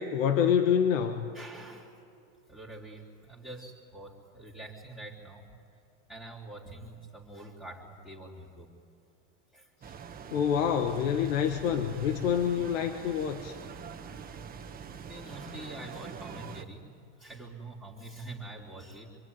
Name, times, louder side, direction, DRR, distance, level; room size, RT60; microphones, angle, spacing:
voice 1, 0.0-1.3 10.3-13.6, left 8 dB, 80° left, 6 dB, 1.6 m, -27 dB
voice 2, 1.3-2.0 2.5-5.5 6.1-8.7 9.5-9.7 13.8-14.0 15.1-19.2, right 2 dB, ahead, -5 dB, 3.6 m, -45 dB
sound 1, 9.8-16.6, right 6 dB, 25° right, 1.6 m, -44 dB
27.0 x 22.5 x 9.7 m, 2.7 s
supercardioid pair, 120°, 39 cm